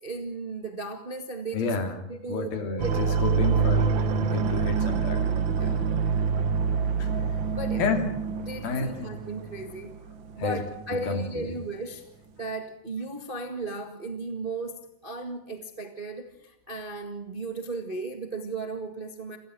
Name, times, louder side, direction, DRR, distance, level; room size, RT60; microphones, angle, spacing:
voice 1, 0.0-1.7 2.1-2.5 2.8-2.9 3.7-3.9 5.6-5.8 7.5-7.9 8.4-9.9 10.4-12.0 12.4-19.4, right 3 dB, 25° right, 6 dB, 1.1 m, -35 dB
voice 2, 1.5-2.0 2.3-5.3 5.6-5.9 7.0-7.1 7.8-8.1 8.6-9.1 10.4-10.6 11.1-11.6, left 4 dB, 80° left, 6 dB, 4.6 m, -30 dB
sound 1, 2.8-11.1 11.4-11.5, right 6 dB, 65° right, 1.2 m, -26 dB
29.0 x 14.5 x 7.7 m, 0.76 s
omnidirectional pair, 4.1 m